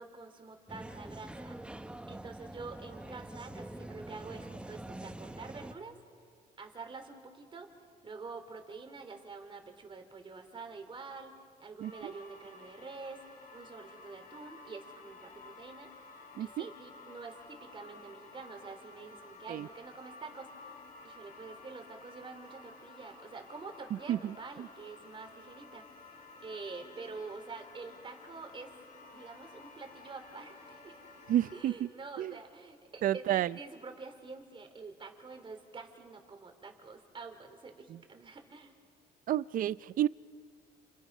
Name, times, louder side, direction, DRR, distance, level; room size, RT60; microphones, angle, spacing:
voice 1, 0.0-1.6 2.1-6.0 6.6-7.7 8.0-11.3 11.6-13.2 13.5-15.9 16.4-25.8 26.4-28.8 29.1-31.0 31.5-38.7, right 4 dB, 30° right, 3.4 m, -47 dB
Busy Coffee Shop, 0.7-5.7, right 1 dB, 5° right, 1.1 m, -45 dB
sound 1, 11.8-31.6, left 3 dB, 55° left, 5.4 m, -53 dB
voice 2, 31.3-31.7 32.2-32.3 33.0-33.5 39.3-40.1, right 12 dB, 55° right, 0.5 m, -30 dB
30.0 x 29.0 x 5.5 m
cardioid pair, 110°, 17 cm